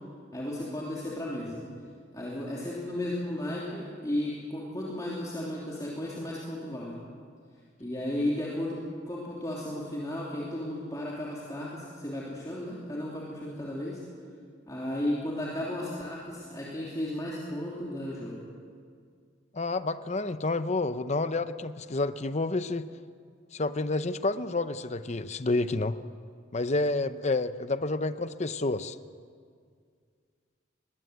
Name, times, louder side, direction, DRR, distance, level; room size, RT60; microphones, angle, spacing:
voice 1, 0.3-1.6 2.1-6.9 7.8-8.8 9.1-14.0 14.7-18.4, left 1 dB, 20° left, -5 dB, 3.0 m, -34 dB
voice 2, 19.5-22.9 23.5-26.0 26.5-29.0, left 2 dB, 35° left, 12 dB, 0.7 m, -29 dB
22.0 x 20.5 x 8.1 m, 2.1 s
head